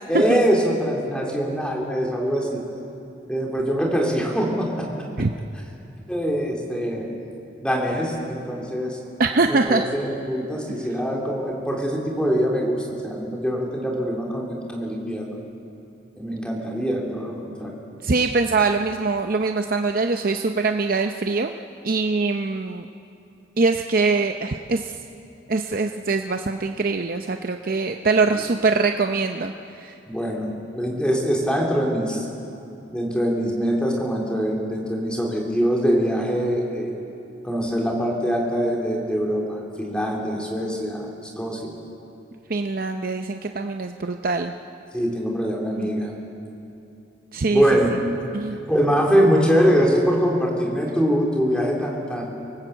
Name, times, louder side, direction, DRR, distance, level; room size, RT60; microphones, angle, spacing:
voice 1, 0.1-2.6 3.3-5.0 6.1-7.1 7.6-9.0 9.5-15.4 16.1-17.8 28.3-28.4 30.1-32.3 32.9-36.9 37.4-41.1 41.4-41.8 44.9-46.1 47.5-47.9 48.7-52.2, equal, 5° left, -1 dB, 3.3 m, -23 dB
voice 2, 9.2-9.9 18.0-21.5 21.8-22.9 23.6-24.9 25.5-29.5 29.8-29.9 42.5-44.5 45.7-45.9 47.3-47.6 48.3-48.6, right 3 dB, 50° right, 5 dB, 0.7 m, -23 dB
24.0 x 18.5 x 8.0 m, 2.7 s
head